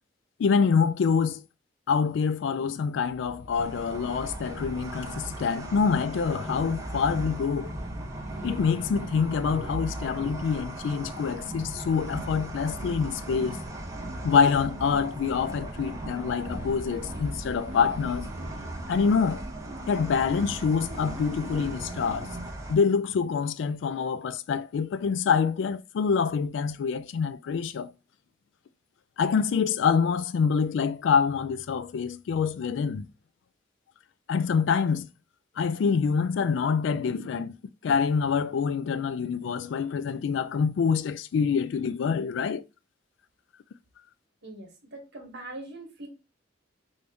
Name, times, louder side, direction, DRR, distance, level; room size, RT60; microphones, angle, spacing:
voice 1, 0.4-1.4 1.9-7.7 8.4-13.6 14.2-18.3 18.9-19.5 19.9-22.3 22.7-27.9 29.2-33.1 34.3-35.1 35.6-37.5 37.8-42.6, left 6 dB, 70° left, 0.3 m, -26 dB
sound 1, 3.1-22.5, right 1 dB, 45° right, 1.1 m, -40 dB
sound 2, 3.5-22.8, right 1 dB, 15° right, 0.6 m, -40 dB
voice 2, 44.4-46.1, right 2 dB, 60° right, 1.2 m, -42 dB
3.4 x 2.7 x 3.4 m
head